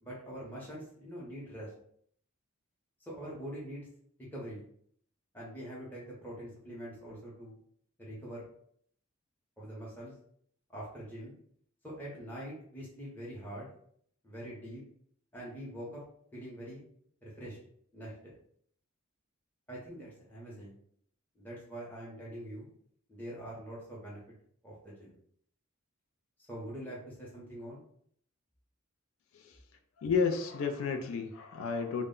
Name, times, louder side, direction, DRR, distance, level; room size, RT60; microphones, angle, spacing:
voice 1, 0.0-1.7 3.0-3.9 4.3-4.7 5.3-7.6 8.0-8.5 9.6-10.1 10.7-11.3 11.8-13.7 14.2-14.8 15.3-16.0 16.3-16.8 17.2-17.6 17.9-18.1 19.7-20.7 21.4-22.7 23.1-24.2 24.6-25.2 26.5-27.8, equal, 10° left, -7 dB, 0.6 m, -44 dB
voice 2, 30.0-32.0, left 5 dB, 70° left, 6 dB, 0.3 m, -31 dB
2.1 x 2.0 x 3.6 m, 0.65 s
head